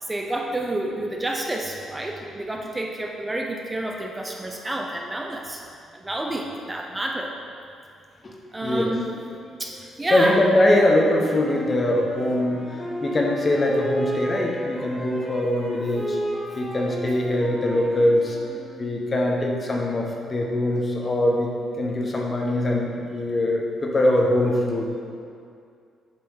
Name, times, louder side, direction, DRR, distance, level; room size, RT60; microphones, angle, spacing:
voice 1, 0.0-5.6 5.9-7.3 8.5-9.1 9.6-10.4, right 1 dB, 15° right, 1 dB, 0.7 m, -29 dB
voice 2, 8.6-9.0 10.1-12.7 13.0-16.2 16.6-18.4 18.8-21.5 21.8-25.0, left 1 dB, 35° left, 0 dB, 1.1 m, -22 dB
Wind instrument woodwind instrument, 11.2-19.2, equal, ahead, 1.2 m, -33 dB
8.3 x 3.4 x 6.4 m, 2.3 s
cardioid pair, 90°, 0 cm